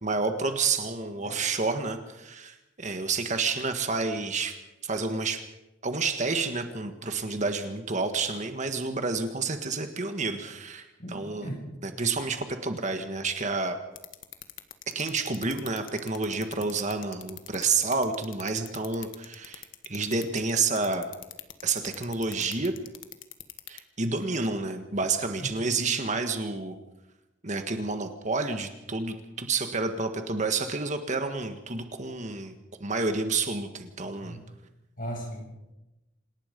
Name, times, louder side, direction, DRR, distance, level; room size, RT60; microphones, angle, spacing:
voice 1, 0.0-4.6 4.8-5.5 5.8-11.5 11.8-13.8 14.9-21.0 21.6-22.7 23.7-26.7 27.4-34.4, right 4 dB, 40° right, 7 dB, 1.6 m, -29 dB
voice 2, 11.0-11.6 25.4-25.5 34.2-34.5 35.0-35.7, equal, 45° left, 1 dB, 7.1 m, -37 dB
sound 1, 13.9-23.8, left 13 dB, 75° left, 1.5 m, -41 dB
27.5 x 19.0 x 5.3 m, 0.98 s
head